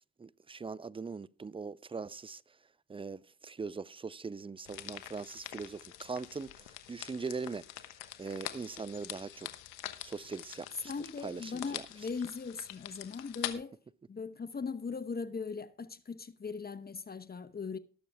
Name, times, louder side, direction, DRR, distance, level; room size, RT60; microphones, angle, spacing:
voice 1, 0.2-2.6 2.9-7.7 8.2-9.5 10.0-10.9 11.2-11.8, right 4 dB, 15° right, 0.5 m, -41 dB
sound 1, 4.7-13.5, left 14 dB, 80° left, 1.1 m, -45 dB
voice 2, 10.8-13.8 14.1-17.8, left 5 dB, 30° left, 1.0 m, -39 dB
19.5 x 6.9 x 3.5 m
supercardioid pair, 55°, 32 cm